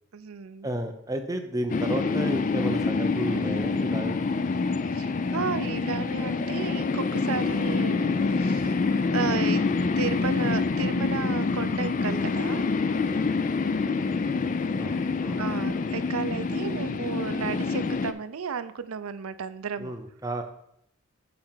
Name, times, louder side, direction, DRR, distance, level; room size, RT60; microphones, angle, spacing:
voice 1, 0.1-0.7 4.9-8.7 9.1-12.6 15.4-19.9, right 6 dB, 75° right, 13 dB, 0.5 m, -33 dB
voice 2, 0.6-4.2 14.8-15.4 19.8-20.4, right 1 dB, 15° right, 5 dB, 0.7 m, -32 dB
sound 1, 1.7-18.1, left 4 dB, 35° left, 0.3 m, -26 dB
6.9 x 4.4 x 5.5 m, 0.75 s
head